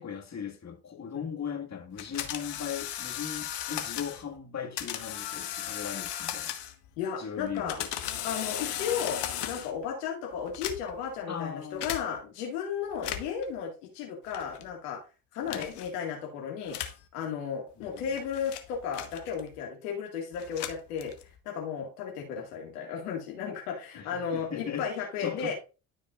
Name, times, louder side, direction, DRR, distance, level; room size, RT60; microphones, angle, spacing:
voice 1, 0.0-6.5 7.2-7.9 11.3-11.9 15.5-15.7 17.8-18.1 24.0-24.9 25.2-25.5, left 7 dB, 35° left, 1.9 m, -38 dB
sound 1, 2.0-4.2 4.8-6.9 7.5-9.8 10.5-11.1 11.8-12.0 12.9-13.4 14.3-14.7 15.5-15.9 16.7-17.0 17.8-19.6 20.3-21.4, left 11 dB, 60° left, 1.3 m, -36 dB
voice 2, 7.0-7.8 8.2-15.0 15.3-16.8 17.1-21.1 21.5-25.5, left 7 dB, 85° left, 2.0 m, -34 dB
13.0 x 4.8 x 2.4 m
hypercardioid pair, 55°, 46 cm